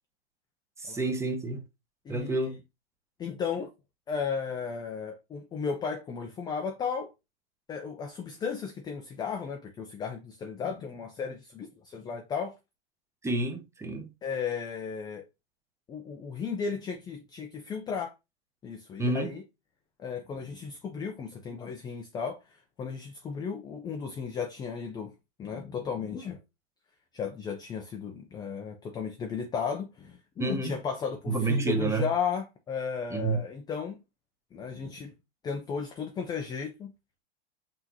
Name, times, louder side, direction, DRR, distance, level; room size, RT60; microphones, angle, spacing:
voice 1, 0.8-1.6 2.1-2.5 13.2-14.1 19.0-19.3 30.4-30.8 31.3-32.1 33.1-33.4, right 2 dB, 10° right, 0.8 m, -29 dB
voice 2, 2.1-2.5 3.2-3.7 4.1-7.1 7.7-12.5 14.2-15.2 15.9-18.1 18.6-19.4 20.0-25.1 25.4-26.4 27.1-34.0 34.5-35.1 35.4-36.9, left 6 dB, 15° left, 0.4 m, -35 dB
5.7 x 2.9 x 2.7 m
hypercardioid pair, 125°, 32 cm